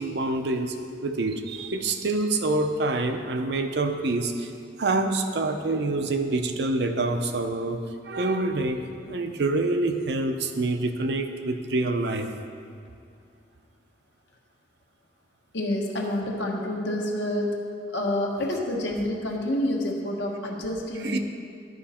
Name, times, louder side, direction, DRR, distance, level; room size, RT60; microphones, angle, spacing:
voice 1, 0.0-4.5 4.8-12.3 21.0-21.2, right 2 dB, 70° right, 6 dB, 0.6 m, -26 dB
voice 2, 15.5-17.6 17.9-21.2, left 1 dB, 85° left, -1 dB, 1.3 m, -28 dB
12.0 x 5.1 x 4.3 m, 2.4 s
head